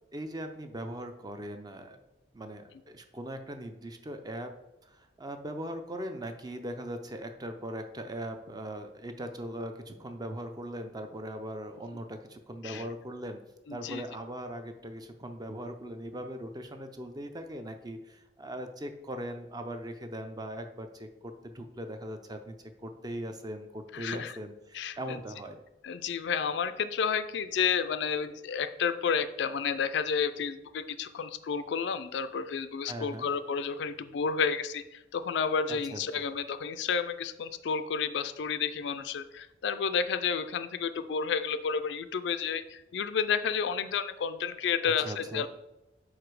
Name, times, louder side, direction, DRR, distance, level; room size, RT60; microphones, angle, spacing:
voice 1, 0.1-2.0 2.3-4.5 4.8-13.4 13.7-22.6 22.8-25.6 32.9-33.3 35.9-36.2 45.0-45.5, right 1 dB, 20° right, 7 dB, 0.4 m, -40 dB
voice 2, 13.7-14.0 23.9-24.3 24.7-25.2 25.8-45.5, left 6 dB, 65° left, 11 dB, 0.3 m, -31 dB
4.9 x 4.2 x 4.7 m, 0.95 s
head